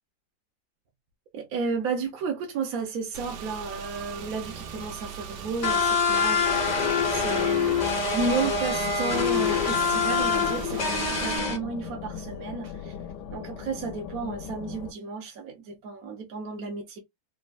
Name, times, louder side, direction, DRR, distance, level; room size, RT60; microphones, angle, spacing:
voice 1, 1.3-7.8 8.1-12.9 13.3-17.0, right 4 dB, 65° right, 1.1 m, -32 dB
Car / Engine, 3.1-11.4, right 7 dB, 85° right, 1.3 m, -39 dB
sound 1, 5.6-11.6, left 5 dB, 55° left, 0.4 m, -25 dB
sound 2, 8.2-14.9, left 7 dB, 85° left, 1.2 m, -38 dB
3.5 x 2.1 x 2.2 m
omnidirectional pair, 1.8 m